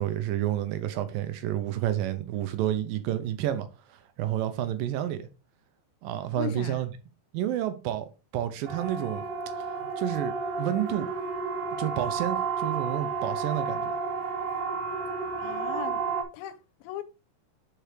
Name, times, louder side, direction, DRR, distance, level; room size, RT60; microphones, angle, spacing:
voice 1, 0.0-3.7 4.2-5.3 6.0-6.9 7.3-9.2 10.0-11.1 11.8-13.9, right 12 dB, 80° right, 2.6 m, -30 dB
voice 2, 6.4-6.8 15.4-16.1 16.3-17.0, left 10 dB, 90° left, 2.5 m, -38 dB
Siren, 8.6-16.2, right 5 dB, 60° right, 1.6 m, -31 dB
6.2 x 5.1 x 4.6 m
omnidirectional pair, 4.1 m